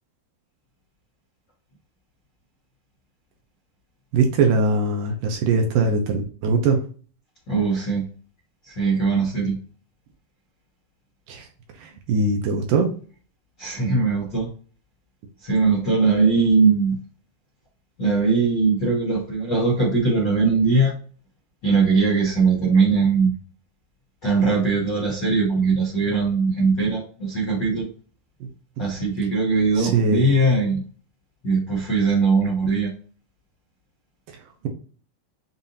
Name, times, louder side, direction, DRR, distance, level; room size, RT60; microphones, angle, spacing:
voice 1, 4.1-6.8 11.3-11.5 11.8-12.9 29.8-30.3, right 3 dB, 75° right, 3 dB, 2.2 m, -21 dB
voice 2, 7.5-8.0 8.7-9.6 13.6-14.5 15.4-17.0 18.0-20.9 21.6-23.3 24.2-27.9 28.8-30.8 31.4-32.9, right 4 dB, 90° left, -4 dB, 0.9 m, -20 dB
7.2 x 2.6 x 2.7 m, 0.40 s
omnidirectional pair, 4.5 m